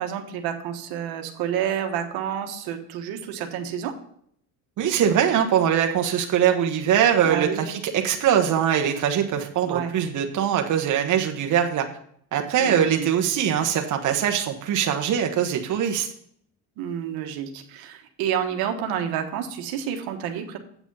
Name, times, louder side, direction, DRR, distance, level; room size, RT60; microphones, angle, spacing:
voice 1, 0.0-3.9 7.2-7.7 9.7-9.9 12.6-13.1 16.8-20.6, right 9 dB, 80° right, 5 dB, 1.4 m, -29 dB
voice 2, 4.8-11.8 12.3-16.1, right 9 dB, 55° right, 3 dB, 1.2 m, -22 dB
8.6 x 6.1 x 5.4 m, 0.65 s
cardioid pair, 110°, 36 cm